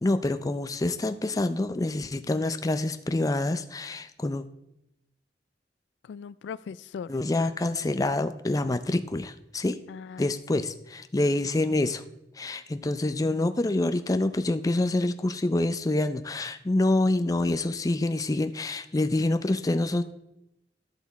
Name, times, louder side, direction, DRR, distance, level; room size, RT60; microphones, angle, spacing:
voice 1, 0.0-4.4 7.1-9.8 10.2-12.0 12.4-20.0, left 2 dB, 20° left, 9 dB, 0.4 m, -26 dB
voice 2, 6.0-7.1 9.9-10.7, left 6 dB, 80° left, 17 dB, 0.3 m, -39 dB
12.5 x 5.9 x 4.1 m, 0.83 s
head